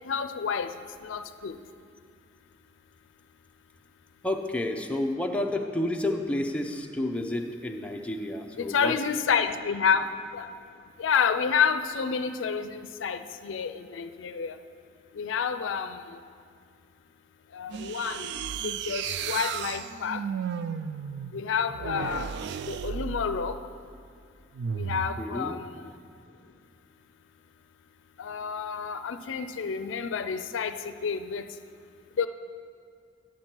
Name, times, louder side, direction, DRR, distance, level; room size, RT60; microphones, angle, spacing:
voice 1, 0.1-0.7 1.0-1.6 8.6-10.5 11.0-14.6 15.1-16.0 17.5-18.3 18.6-20.2 21.3-22.3 22.7-23.6 24.7-25.7 28.2-31.4 32.2-32.3, left 6 dB, 80° left, 10 dB, 0.4 m, -29 dB
voice 2, 4.2-9.0 25.2-25.6, left 1 dB, 5° left, 2 dB, 0.5 m, -30 dB
sound 1, 17.7-23.7 24.5-25.2, right 7 dB, 65° right, 0.3 m, -34 dB
10.5 x 7.2 x 4.4 m, 2.3 s
head